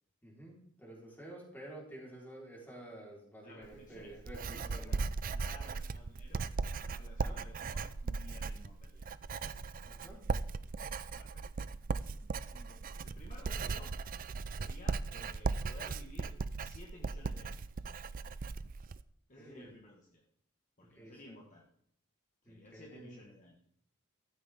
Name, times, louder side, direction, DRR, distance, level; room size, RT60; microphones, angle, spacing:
voice 1, 0.2-5.0 7.2-7.4 9.9-10.2 19.4-19.7 20.9-21.4 22.4-23.2, right 1 dB, 10° left, -3 dB, 4.1 m, -50 dB
voice 2, 3.4-6.4 6.8-9.1 11.1-11.4 12.5-13.9 14.5-16.3 16.6-17.8 19.3-20.2 20.8-21.6 22.4-23.6, left 1 dB, 35° left, -1 dB, 1.6 m, -55 dB
Writing, 3.6-19.0, right 4 dB, 40° right, 0.4 m, -38 dB
14.0 x 13.5 x 3.6 m, 0.70 s
head